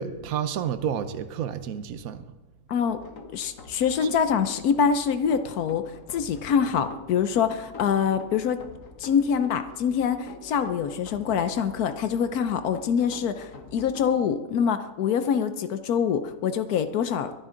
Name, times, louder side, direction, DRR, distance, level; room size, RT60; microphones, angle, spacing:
voice 1, 0.0-2.2 4.0-4.1, right 8 dB, 70° right, 11 dB, 1.2 m, -30 dB
sound 1, 2.8-14.1, left 3 dB, 60° left, 1.6 m, -46 dB
voice 2, 3.3-5.8 6.1-8.6 9.0-17.3, left 7 dB, 90° left, 10 dB, 1.3 m, -25 dB
23.5 x 11.0 x 3.8 m, 1.1 s
omnidirectional pair, 1.6 m